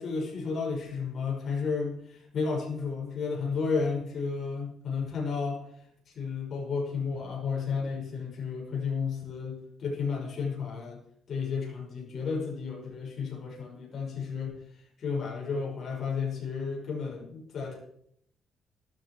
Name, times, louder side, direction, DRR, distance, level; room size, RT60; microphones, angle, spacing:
voice 1, 0.0-5.6 6.2-11.0 11.3-14.6 15.0-17.8, left 5 dB, 55° left, -1 dB, 5.8 m, -32 dB
12.5 x 12.0 x 4.8 m, 0.68 s
cardioid pair, 90°, 0 cm